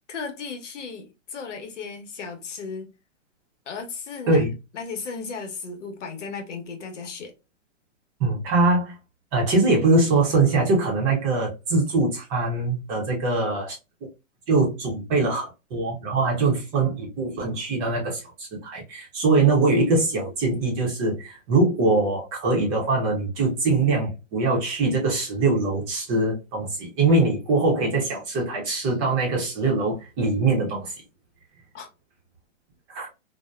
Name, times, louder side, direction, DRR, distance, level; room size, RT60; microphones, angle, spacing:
voice 1, 0.1-2.9 3.7-4.4 4.7-7.3 31.7-31.9, left 5 dB, 65° left, 0.9 m, -35 dB
voice 2, 8.2-9.0 9.3-13.8 14.5-30.9 32.9-33.1, right 3 dB, 25° right, 0.7 m, -22 dB
2.8 x 2.1 x 2.2 m
hypercardioid pair, 140°, 38 cm